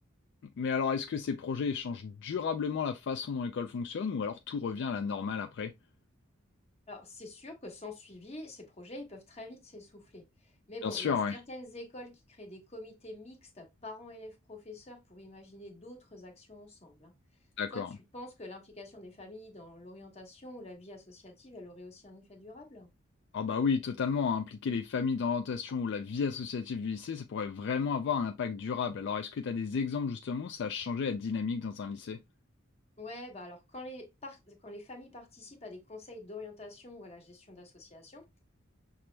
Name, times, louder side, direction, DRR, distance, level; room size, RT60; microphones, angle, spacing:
voice 1, 0.6-5.7 10.8-11.3 17.6-17.9 23.3-32.2, left 6 dB, 60° left, 0.3 m, -32 dB
voice 2, 6.9-17.1 17.7-17.8 18.1-22.9 33.0-38.4, left 2 dB, 30° left, 1.2 m, -47 dB
5.9 x 2.0 x 3.2 m
head